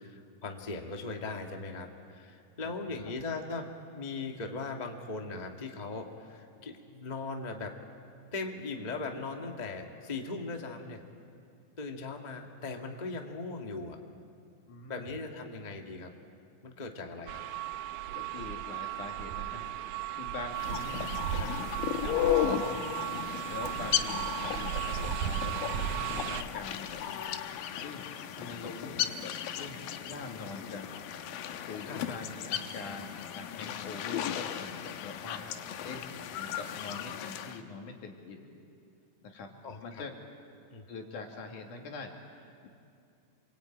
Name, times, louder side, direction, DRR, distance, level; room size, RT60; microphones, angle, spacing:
voice 1, 0.0-3.7 3.9-7.7 8.3-11.0 11.8-14.0 14.9-16.1 16.6-17.4 31.9-32.1 39.6-40.0 40.7-40.9, left 3 dB, 30° left, 3 dB, 0.7 m, -39 dB
voice 2, 2.6-3.0 14.7-15.1 18.2-19.6 20.1-22.9 23.5-27.1 27.8-30.9 31.7-35.5 35.8-36.1 36.3-38.5 39.2-39.6 39.8-40.1 40.9-42.7, left 4 dB, 65° left, 2 dB, 3.6 m, -44 dB
sound 1, 17.3-26.4, right 12 dB, 75° right, 2.2 m, -35 dB
sound 2, 20.5-37.6, left 10 dB, 80° left, 2.7 m, -35 dB
28.0 x 23.0 x 9.0 m, 2.4 s
omnidirectional pair, 4.0 m